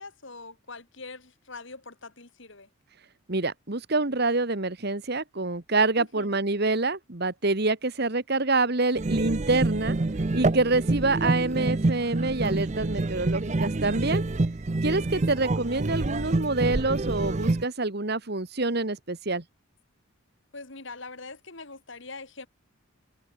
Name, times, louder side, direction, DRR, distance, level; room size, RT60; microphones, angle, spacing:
voice 1, 0.0-2.7 6.0-6.4 10.0-10.1 14.9-15.2 20.5-22.5, left 3 dB, 60° left, 2.8 m, -43 dB
voice 2, 3.3-10.0 10.3-14.2 14.8-19.4, right 3 dB, 50° right, 1.6 m, -26 dB
sound 1, 8.9-17.6, right 2 dB, 35° right, 0.6 m, -27 dB
head